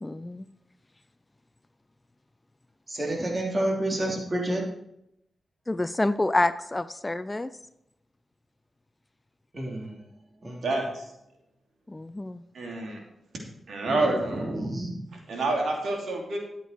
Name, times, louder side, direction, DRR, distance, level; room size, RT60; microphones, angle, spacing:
voice 1, 0.0-0.5 5.7-7.5 11.9-12.4, left 2 dB, 20° left, 13 dB, 0.5 m, -27 dB
voice 2, 2.9-4.7 9.5-10.0 10.4-10.6 13.9-15.0, right 1 dB, 40° right, -1 dB, 3.5 m, -30 dB
voice 3, 10.6-11.0 12.5-13.0 13.7-14.5 15.3-16.4, right 2 dB, 75° right, 1 dB, 2.8 m, -28 dB
12.0 x 8.4 x 4.5 m, 0.79 s
cardioid pair, 55°, 0 cm